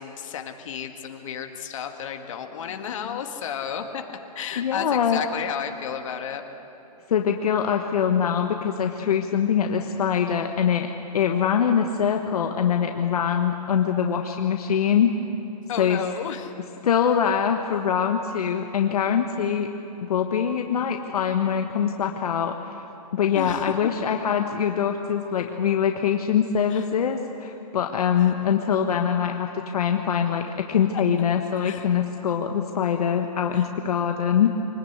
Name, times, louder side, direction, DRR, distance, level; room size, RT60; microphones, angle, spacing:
voice 1, 0.0-6.4 15.7-16.5 23.4-23.8 26.7-26.8 28.2-28.3 31.6-31.8 33.5-33.7, left 8 dB, 50° left, 5 dB, 1.9 m, -33 dB
voice 2, 4.6-5.2 7.1-10.9 11.1-15.1 15.8-16.0 16.8-19.7 20.1-22.8 23.1-34.5, left 8 dB, 70° left, 4 dB, 1.3 m, -23 dB
24.5 x 19.5 x 8.2 m, 3.0 s
hypercardioid pair, 160°, 20 cm